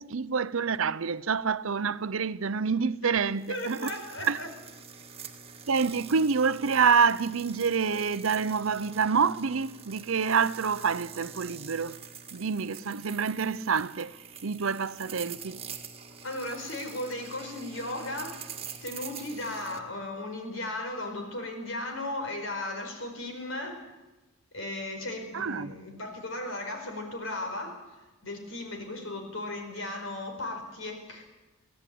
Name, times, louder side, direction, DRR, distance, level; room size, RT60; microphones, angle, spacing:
voice 1, 0.0-3.9 4.2-4.4 5.7-12.0 12.3-14.2 14.4-15.6 25.3-25.8, right 5 dB, 75° right, 0.7 m, -27 dB
sound 1, 3.4-19.8, right 6 dB, 30° right, 1.7 m, -45 dB
voice 2, 3.5-4.5 16.2-18.4 18.8-23.8 24.5-27.8 28.2-31.2, left 2 dB, 70° left, 4.8 m, -36 dB
23.5 x 16.5 x 8.6 m
head